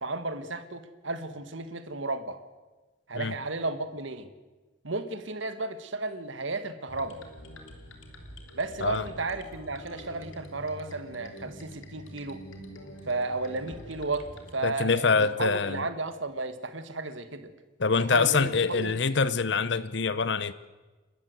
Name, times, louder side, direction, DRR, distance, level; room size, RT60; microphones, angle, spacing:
voice 1, 0.0-2.4 3.1-4.3 4.8-7.2 8.6-12.4 13.1-17.5 17.9-19.0, right 3 dB, 70° right, 10 dB, 1.7 m, -33 dB
sound 1, 6.9-14.5, equal, 80° left, 3.2 m, -46 dB
voice 2, 14.6-15.8 17.8-20.5, left 4 dB, 60° left, 16 dB, 0.8 m, -25 dB
30.0 x 13.5 x 8.0 m, 1.2 s
head